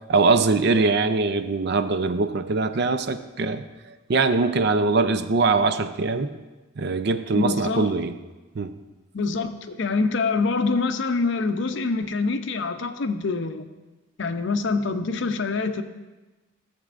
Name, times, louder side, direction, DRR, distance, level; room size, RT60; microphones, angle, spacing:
voice 1, 0.1-3.6 4.1-6.3 6.8-8.1 8.6-8.7, right 3 dB, 50° right, 10 dB, 0.4 m, -22 dB
voice 2, 7.3-7.9 9.1-13.6 14.2-15.8, left 4 dB, 55° left, 9 dB, 0.5 m, -25 dB
16.0 x 7.4 x 2.5 m, 1.2 s
head